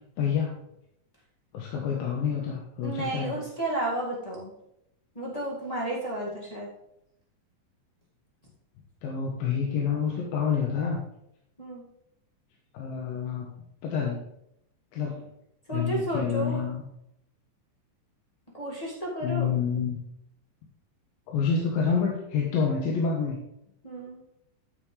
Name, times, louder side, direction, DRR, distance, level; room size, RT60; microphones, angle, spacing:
voice 1, 0.2-0.6 1.5-3.4 9.0-11.0 12.7-14.2 14.9-15.3 15.7-16.8 19.2-20.0 21.3-23.4, left 6 dB, 75° left, -2 dB, 2.9 m, -28 dB
voice 2, 2.8-4.5 5.1-6.7 11.6-11.8 15.7-16.6 18.5-19.5 23.8-24.2, right 1 dB, 15° left, -5 dB, 1.4 m, -32 dB
13.0 x 7.2 x 3.3 m, 0.80 s
omnidirectional pair, 4.1 m